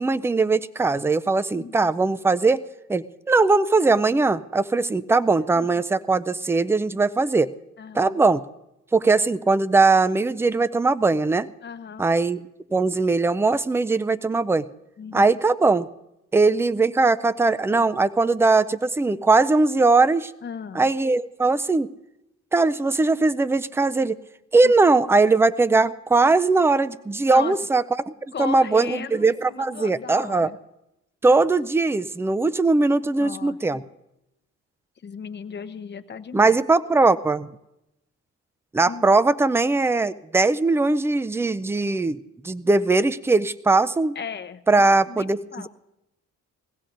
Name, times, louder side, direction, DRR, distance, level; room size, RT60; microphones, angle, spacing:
voice 1, 0.0-2.6 2.9-7.5 7.9-8.4 8.9-11.5 12.0-12.4 12.7-14.7 15.1-15.9 16.3-20.3 20.8-21.9 22.5-24.2 24.5-27.8 28.4-30.5 31.2-33.8 36.3-37.5 38.7-42.2 42.4-44.2 44.7-45.4, right 3 dB, 10° right, 15 dB, 0.4 m, -20 dB
voice 2, 1.5-1.9 7.8-8.2 11.6-12.1 15.0-15.3 20.4-20.9 24.6-24.7 27.3-27.6 28.3-30.6 33.2-33.9 35.0-36.6 38.9-39.2 44.1-45.7, left 6 dB, 35° left, 9 dB, 0.8 m, -37 dB
21.5 x 16.5 x 2.6 m, 0.88 s
cardioid pair, 90°, 30 cm